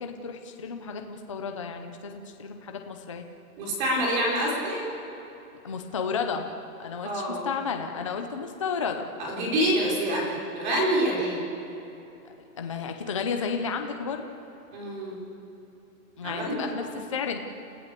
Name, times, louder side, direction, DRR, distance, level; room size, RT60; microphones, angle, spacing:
voice 1, 0.0-3.3 5.6-9.1 12.2-14.2 16.2-17.4, left 5 dB, 20° left, 5 dB, 0.5 m, -32 dB
voice 2, 3.6-4.8 7.0-7.5 9.2-11.5 14.7-15.2 16.2-16.9, right 1 dB, 30° right, -2 dB, 4.4 m, -27 dB
29.5 x 15.0 x 6.7 m, 3.0 s
hypercardioid pair, 170°, 47 cm